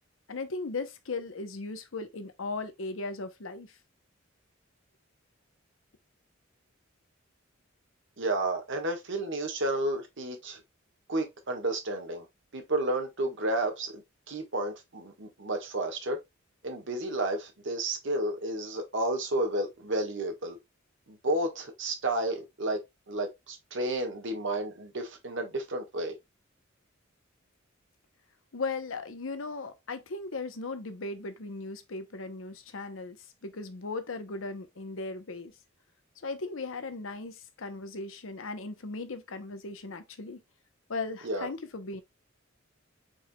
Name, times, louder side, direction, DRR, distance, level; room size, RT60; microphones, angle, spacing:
voice 1, 0.3-3.8 28.5-33.2 33.4-35.5 36.2-40.4 40.9-42.0, left 3 dB, 75° left, 0.8 m, -37 dB
voice 2, 8.2-10.6 11.1-12.3 12.5-16.2 16.6-20.6 21.1-26.2 41.2-41.5, right 1 dB, 65° right, 1.4 m, -31 dB
4.7 x 4.3 x 2.2 m
head